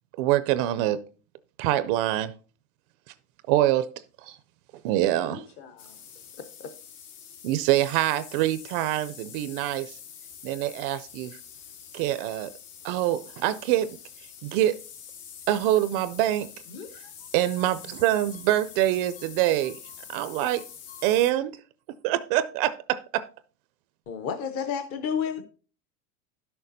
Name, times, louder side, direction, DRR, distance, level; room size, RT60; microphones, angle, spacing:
voice 1, 0.2-1.0 1.6-2.3 3.1-3.2 3.5-3.9 4.2-4.4 4.8-5.4 7.4-10.0 10.4-11.4 11.9-12.5 12.8-14.0 14.4-14.8 15.5-16.5 17.3-19.8 20.1-20.6 21.0-21.6 22.0-23.3, right 14 dB, 40° right, 0.4 m, -25 dB
voice 2, 5.1-6.0 16.7-17.3 17.6-18.6 18.9-21.2, left 5 dB, 60° left, 2.4 m, -50 dB
sound 1, 5.8-21.3, left 8 dB, 75° left, 2.4 m, -46 dB
voice 3, 6.4-6.7 24.1-25.4, left 7 dB, 30° left, 0.7 m, -30 dB
11.5 x 6.6 x 4.0 m
supercardioid pair, 150°, 45 cm